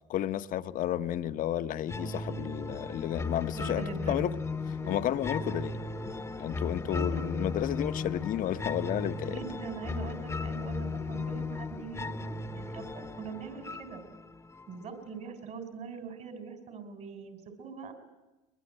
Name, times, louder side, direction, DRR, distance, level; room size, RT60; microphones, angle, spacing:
voice 1, 0.1-4.3 4.9-5.7 6.4-9.4, left 12 dB, 55° left, 0.9 m, -32 dB
sound 1, 1.9-14.9, left 3 dB, 15° left, 1.0 m, -36 dB
voice 2, 1.9-2.5 3.5-4.3 6.5-6.6 6.9-7.4 9.2-14.0 14.7-17.9, right 6 dB, 50° right, 4.2 m, -43 dB
Guitar, 4.8-9.8, right 9 dB, 90° right, 1.8 m, -54 dB
22.0 x 21.0 x 8.8 m
supercardioid pair, 80°, 16 cm